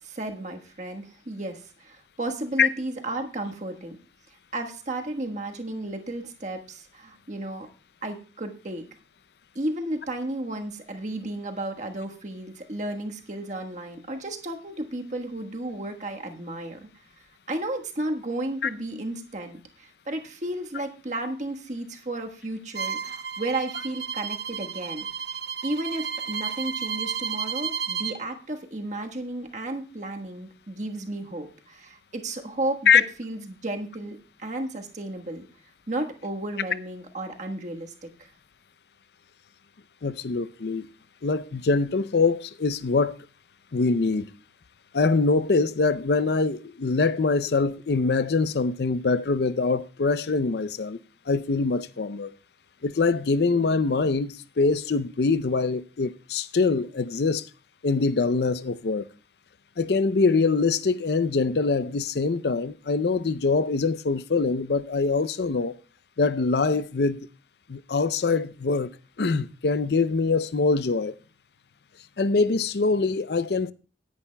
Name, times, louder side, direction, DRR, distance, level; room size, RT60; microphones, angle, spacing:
voice 1, 0.0-4.0 4.5-7.7 8.0-8.9 9.5-16.9 17.2-25.1 25.6-35.5 35.9-38.3, right 1 dB, 40° right, 1.3 m, -33 dB
Bowed string instrument, 22.7-28.2, right 7 dB, 70° right, 0.9 m, -32 dB
voice 2, 40.0-40.9 41.2-43.1 43.7-44.3 44.9-51.0 51.3-52.3 52.8-57.5 57.8-59.1 59.8-65.8 66.2-67.3 67.7-68.9 69.2-71.1 72.2-73.7, left 4 dB, 60° left, 0.5 m, -24 dB
18.0 x 10.5 x 2.2 m
head